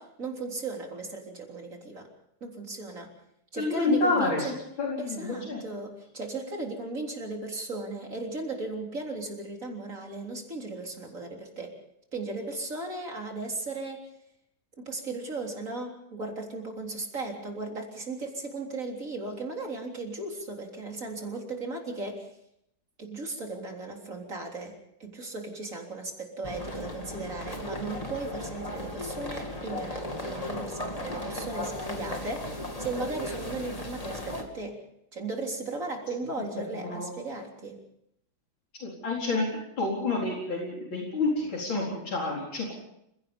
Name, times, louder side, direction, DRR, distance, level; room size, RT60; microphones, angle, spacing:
voice 1, 0.0-2.1 2.4-3.1 3.5-4.5 5.0-11.7 12.1-14.1 14.8-22.3 23.0-24.7 25.0-34.8 35.1-37.8, right 2 dB, 40° right, 1 dB, 4.0 m, -36 dB
voice 2, 3.6-4.4 4.8-5.6 36.9-37.1 38.8-39.5 39.8-42.7, left 3 dB, 85° left, -2 dB, 5.0 m, -28 dB
sound 1, 26.4-34.4, left 1 dB, 20° left, 2.5 m, -36 dB
29.5 x 17.0 x 5.3 m, 0.75 s
omnidirectional pair, 2.1 m